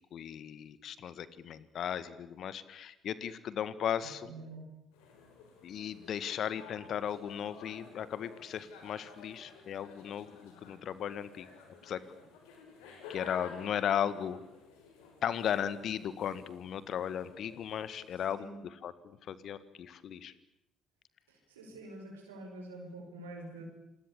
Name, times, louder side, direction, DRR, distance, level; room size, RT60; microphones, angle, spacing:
voice 1, 0.1-4.3 5.6-11.5 11.8-12.0 13.1-14.4 15.2-20.3, left 9 dB, 55° left, 15 dB, 1.7 m, -36 dB
voice 2, 4.0-4.6 18.4-18.5 21.3-23.6, right 2 dB, 85° right, 1 dB, 5.4 m, -47 dB
sound 1, 4.9-18.4, left 5 dB, 75° left, 5.6 m, -53 dB
28.0 x 20.5 x 8.6 m, 0.87 s
hypercardioid pair, 50°, 0 cm